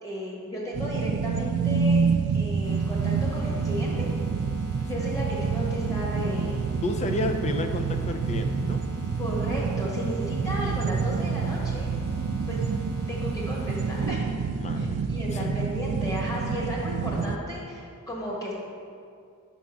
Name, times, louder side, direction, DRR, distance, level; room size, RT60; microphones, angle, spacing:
voice 1, 0.0-2.0 2.3-4.1 4.8-6.6 9.2-11.9 12.5-12.7 13.1-14.2 14.8-18.5, equal, 15° left, -5 dB, 1.4 m, -34 dB
sound 1, 0.7-17.4, right 5 dB, 85° right, 0.4 m, -28 dB
sound 2, 2.6-14.1, right 2 dB, 85° left, 1.2 m, -39 dB
voice 2, 6.8-8.8 14.6-15.7, left 2 dB, 30° left, 6 dB, 0.4 m, -32 dB
5.2 x 4.6 x 5.6 m, 2.3 s
head